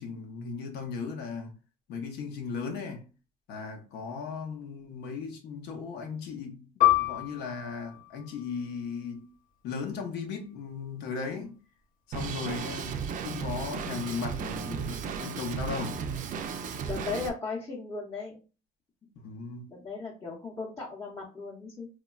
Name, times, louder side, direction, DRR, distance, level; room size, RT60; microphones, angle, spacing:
voice 1, 0.0-1.5 1.9-3.1 3.5-9.3 9.6-11.6 12.1-16.1 19.2-19.7, left 5 dB, 80° left, 0.7 m, -37 dB
Piano, 6.8-11.8 12.2-12.3 13.1-13.5, left 15 dB, 50° left, 0.9 m, -30 dB
Drum kit, 12.1-17.3, right 6 dB, 50° right, 0.4 m, -35 dB
voice 2, 16.8-18.4 19.0-19.1 19.7-21.9, left 4 dB, 20° left, 0.7 m, -37 dB
3.1 x 2.2 x 2.2 m
cardioid pair, 110°, 17 cm